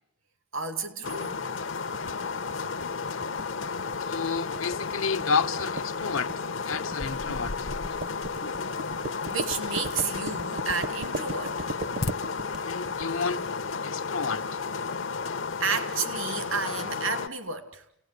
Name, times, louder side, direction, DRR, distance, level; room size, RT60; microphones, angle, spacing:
voice 1, 0.5-1.4 9.3-11.7 15.6-17.8, right 5 dB, 80° right, 2.5 m, -31 dB
sound 1, 1.0-17.3, left 5 dB, 70° left, 1.0 m, -33 dB
sound 2, 1.9-13.5, right 2 dB, 55° right, 0.9 m, -38 dB
voice 2, 4.0-6.3 6.6-7.7 12.6-13.4 13.8-14.4, left 5 dB, 90° left, 1.4 m, -30 dB
sound 3, 7.0-10.2 10.6-11.1 11.4-12.1, left 2 dB, 50° left, 0.9 m, -38 dB
29.5 x 18.5 x 8.3 m
head